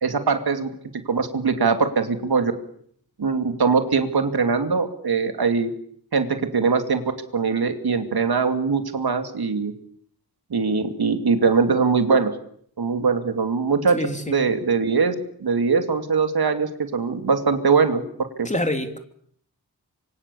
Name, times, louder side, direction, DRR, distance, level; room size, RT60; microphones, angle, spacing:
voice 1, 0.0-0.7 1.1-2.5 3.2-5.7 6.1-7.0 7.3-9.7 10.5-12.3 12.8-14.0 14.3-15.1 15.4-18.0 18.4-18.5, right 5 dB, 75° right, 7 dB, 2.7 m, -21 dB
voice 2, 13.9-14.4 18.4-19.0, left 1 dB, 20° left, 7 dB, 3.3 m, -26 dB
25.5 x 25.0 x 7.1 m, 0.64 s
cardioid pair, 60°, 38 cm